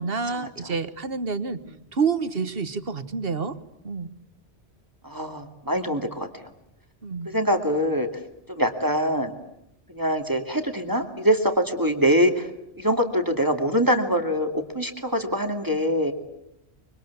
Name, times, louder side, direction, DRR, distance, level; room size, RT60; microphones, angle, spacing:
voice 1, 0.0-1.6 1.9-3.6 3.8-4.1 7.0-7.3, right 5 dB, 55° right, 12 dB, 1.6 m, -28 dB
voice 2, 5.0-6.5 7.2-8.1 8.5-9.3 9.9-12.5 12.8-16.1, equal, 20° right, 5 dB, 2.4 m, -24 dB
25.0 x 24.5 x 8.3 m, 0.84 s
omnidirectional pair, 1.1 m